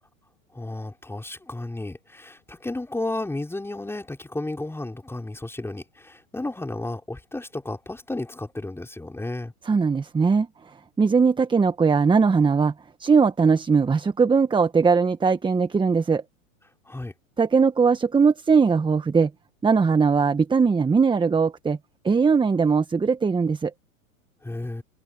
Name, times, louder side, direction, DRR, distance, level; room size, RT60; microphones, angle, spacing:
voice 1, 0.5-9.5 16.9-17.1 24.4-24.8, left 2 dB, 5° left, 5.6 m, -33 dB
voice 2, 9.6-10.5 11.0-12.7 13.0-16.2 17.4-19.3 19.6-21.8 22.0-23.7, right 5 dB, 10° right, 1.3 m, -20 dB
open air
hypercardioid pair, 110°, 43 cm